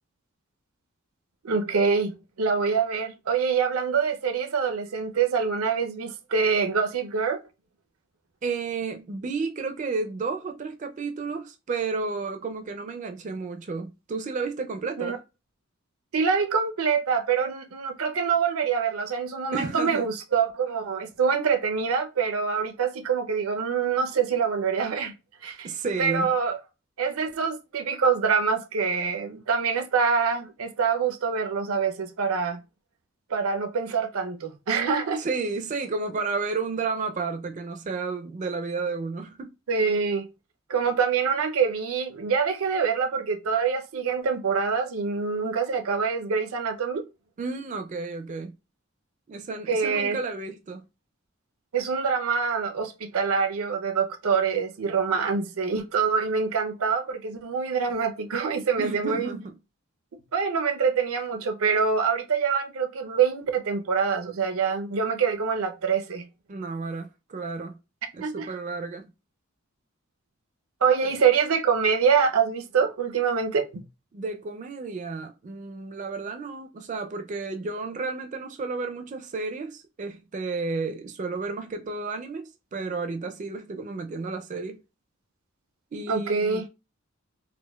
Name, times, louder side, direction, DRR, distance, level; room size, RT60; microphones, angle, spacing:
voice 1, 1.4-7.4 15.0-15.2 16.1-25.1 25.4-25.7 26.0-26.6 27.0-32.6 33.3-35.3 39.7-40.3 40.7-47.0 49.7-50.2 51.7-59.3 60.3-66.3 68.2-68.5 70.8-73.8 86.1-86.7, right 6 dB, 85° right, 0.5 m, -25 dB
voice 2, 8.4-15.2 19.5-20.1 25.6-26.3 35.2-39.5 47.4-48.5 49.3-50.9 58.8-59.5 66.5-67.8 68.1-69.1 71.0-71.1 74.1-84.8 85.9-86.7, right 4 dB, 35° right, 0.4 m, -32 dB
4.3 x 2.1 x 2.2 m
head